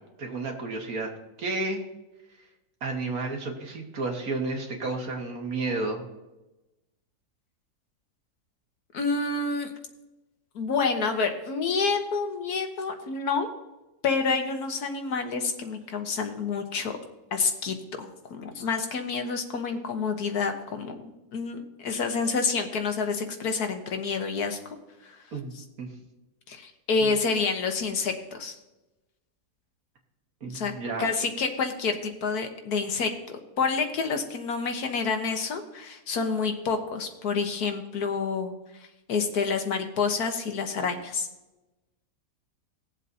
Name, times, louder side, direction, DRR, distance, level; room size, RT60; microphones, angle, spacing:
voice 1, 0.2-1.1 1.4-1.8 2.8-6.1 25.3-25.9 27.0-27.1 30.4-31.1, right 3 dB, 60° right, 2 dB, 2.0 m, -31 dB
voice 2, 8.9-9.7 10.5-13.5 14.0-16.9 17.3-24.6 25.0-25.1 25.6-25.7 26.5-28.5 30.5-30.7 31.0-38.5 39.1-41.3, left 4 dB, 70° left, 5 dB, 1.6 m, -28 dB
19.5 x 7.6 x 2.7 m, 1.0 s
omnidirectional pair, 1.7 m